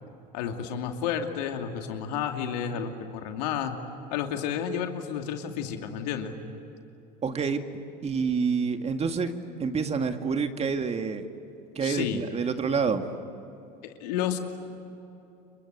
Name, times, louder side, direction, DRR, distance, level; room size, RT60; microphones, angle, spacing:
voice 1, 0.3-3.8 4.1-6.3 11.8-12.2 13.8-14.4, left 8 dB, 80° left, 4 dB, 2.6 m, -31 dB
voice 2, 7.2-7.6 8.0-9.3 9.6-11.2 11.8-13.1, right 5 dB, 30° right, 7 dB, 2.1 m, -27 dB
29.5 x 23.5 x 8.2 m, 2.9 s
supercardioid pair, 90°, 21 cm